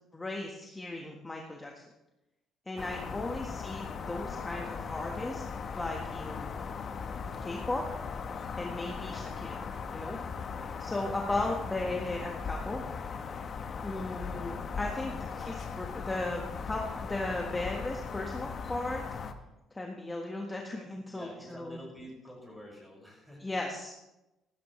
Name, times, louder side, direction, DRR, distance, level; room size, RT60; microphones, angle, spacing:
voice 1, 0.1-1.8 2.7-5.4 5.8-6.5 7.4-7.8 8.6-10.2 10.8-12.8 13.8-19.0 19.7-21.8 23.4-24.0, left 2 dB, 15° left, 0 dB, 1.5 m, -36 dB
sound 1, 2.8-19.3, left 5 dB, 45° left, 1.0 m, -38 dB
voice 2, 21.1-23.5, equal, 5° right, -1 dB, 5.8 m, -48 dB
15.5 x 12.5 x 3.2 m, 0.95 s
cardioid pair, 100°, 0 cm